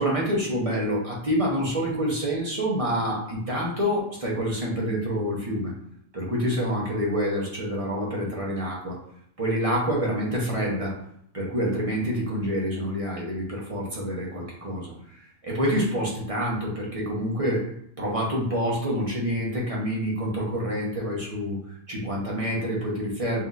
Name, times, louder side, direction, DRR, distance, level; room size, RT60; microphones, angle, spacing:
voice 1, 0.0-5.7 6.1-9.0 9.4-11.0 11.3-14.9 15.4-21.6 21.9-23.4, equal, 30° right, -3 dB, 0.8 m, -27 dB
5.8 x 2.8 x 2.5 m, 0.70 s
omnidirectional pair, 1.3 m